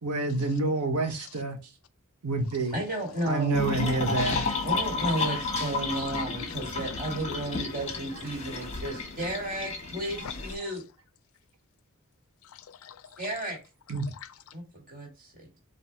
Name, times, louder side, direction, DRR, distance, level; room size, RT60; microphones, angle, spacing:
voice 1, 0.0-1.6 2.2-2.8 3.2-4.4 13.9-14.1, right 3 dB, 85° right, 0.8 m, -28 dB
voice 2, 1.1-1.4 4.6-5.3 6.1-8.9 10.2-10.4 12.4-13.3 14.0-14.5, left 8 dB, 65° left, 0.4 m, -45 dB
voice 3, 2.7-3.6 4.6-10.8 13.2-13.6 14.5-15.6, right 1 dB, 40° right, 1.9 m, -33 dB
sound 1, 3.5-10.6, left 3 dB, 30° left, 1.0 m, -32 dB
4.2 x 2.6 x 4.4 m
head